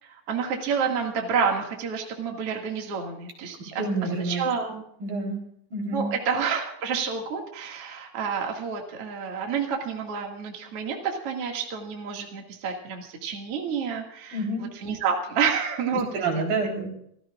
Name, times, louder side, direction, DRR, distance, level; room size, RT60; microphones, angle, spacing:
voice 1, 0.0-3.8 4.2-4.8 5.9-14.4 14.8-16.6, right 6 dB, 45° right, 1 dB, 2.8 m, -29 dB
voice 2, 3.8-4.5 5.0-5.4 5.7-6.1 14.3-14.7 15.9-16.9, right 3 dB, 75° right, 1 dB, 5.5 m, -28 dB
27.0 x 15.5 x 2.5 m, 0.69 s
omnidirectional pair, 4.1 m